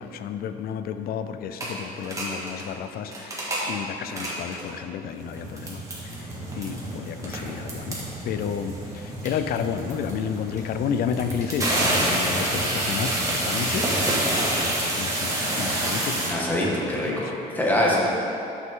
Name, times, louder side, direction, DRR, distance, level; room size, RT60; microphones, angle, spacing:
voice 1, 0.0-6.3 6.5-17.6, left 7 dB, 65° left, 9 dB, 0.5 m, -32 dB
sound 1, 1.6-1.7 2.0-2.6 3.0-3.7 4.0-4.7 5.2-16.3, right 1 dB, 20° right, 1.9 m, -28 dB
voice 2, 16.3-18.1, left 1 dB, 10° left, -4 dB, 1.8 m, -24 dB
10.5 x 6.2 x 3.7 m, 2.8 s
cardioid pair, 110°, 17 cm